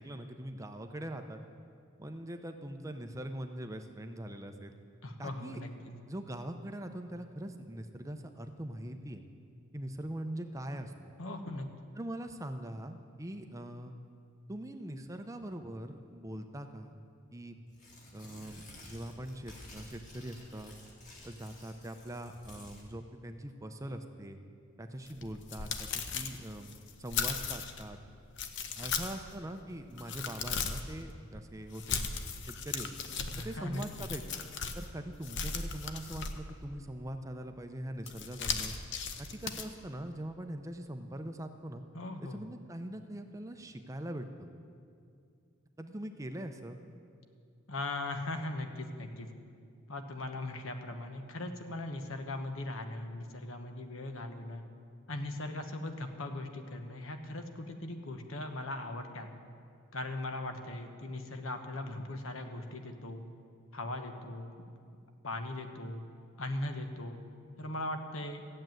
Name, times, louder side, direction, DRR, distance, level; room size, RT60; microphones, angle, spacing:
voice 1, 0.0-1.4 2.0-4.7 5.2-5.6 6.1-9.2 9.7-10.9 12.0-14.0 14.5-17.0 17.3-17.6 18.1-20.7 21.2-24.4 24.8-26.7 27.0-28.0 28.8-32.0 32.5-33.0 33.4-34.2 34.7-38.7 39.2-41.8 42.2-44.5 45.8-46.8, right 1 dB, 15° right, 7 dB, 0.6 m, -42 dB
voice 2, 5.0-5.7 11.2-11.7 33.3-33.9 41.9-42.4 47.7-49.3 49.9-54.6 55.1-59.3 59.9-63.2 63.7-64.5 65.2-66.0 66.4-67.2 67.6-68.4, left 2 dB, 75° left, 6 dB, 1.2 m, -39 dB
Tearing, 17.7-22.9, left 1 dB, 35° left, 2.3 m, -52 dB
sound 1, 25.1-27.8 28.3-29.3 29.7-30.9 31.7-34.9 35.2-36.6 38.0-39.6, left 5 dB, 55° left, 0.9 m, -37 dB
14.5 x 7.7 x 9.1 m, 2.4 s
head